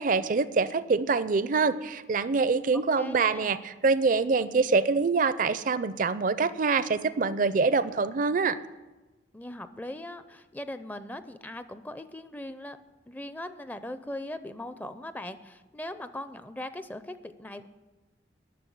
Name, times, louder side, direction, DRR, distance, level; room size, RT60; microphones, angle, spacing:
voice 1, 0.0-8.6, right 4 dB, 45° right, 15 dB, 0.5 m, -25 dB
voice 2, 2.7-3.5 9.3-12.8 13.1-17.7, left 1 dB, 10° left, 11 dB, 0.5 m, -40 dB
11.0 x 6.5 x 9.2 m, 1.2 s
head